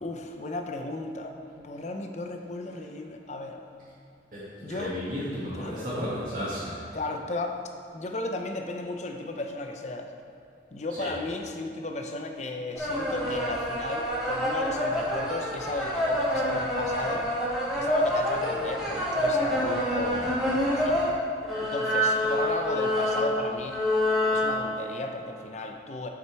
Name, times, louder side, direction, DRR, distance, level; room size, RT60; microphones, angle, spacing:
voice 1, 0.0-3.6 4.6-4.9 5.5-5.8 6.9-7.6 7.9-10.1 10.7-17.3 17.8-21.0 21.6-23.8 24.3-26.1, left 2 dB, 40° left, 4 dB, 0.6 m, -34 dB
voice 2, 4.3-6.8 11.0-11.1, equal, 50° right, -12 dB, 2.1 m, -33 dB
sound 1, 12.7-21.1 21.4-24.6, left 1 dB, ahead, 1.8 m, -27 dB
7.7 x 6.0 x 4.6 m, 2.5 s
head